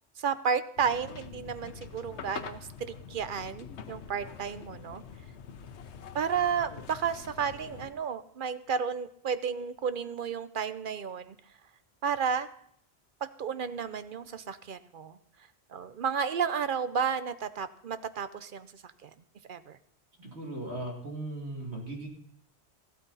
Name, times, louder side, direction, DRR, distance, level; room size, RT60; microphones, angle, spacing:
voice 1, 0.2-5.0 6.1-11.4 12.0-12.5 13.2-15.2 15.7-18.7 19.0-19.1 19.5-19.8, right 6 dB, 55° right, 12 dB, 0.8 m, -32 dB
sound 1, 0.8-7.9, left 6 dB, 85° left, 1.1 m, -45 dB
voice 2, 20.2-22.1, right 2 dB, 80° right, 0 dB, 2.9 m, -38 dB
14.5 x 12.5 x 4.1 m, 0.66 s
omnidirectional pair, 1.1 m